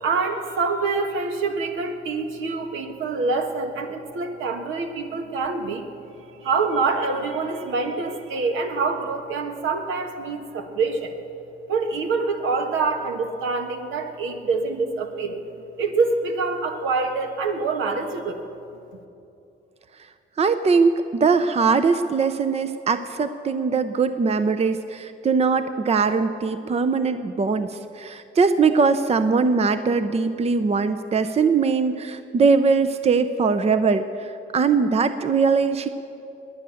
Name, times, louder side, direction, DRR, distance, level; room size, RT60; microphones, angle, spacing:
voice 1, 0.0-11.1 11.7-15.4 15.8-18.4, right 4 dB, 80° right, 5 dB, 1.5 m, -26 dB
voice 2, 20.4-35.9, right 5 dB, 30° right, 11 dB, 0.6 m, -21 dB
21.5 x 9.3 x 7.1 m, 2.8 s
cardioid pair, 90°, 20 cm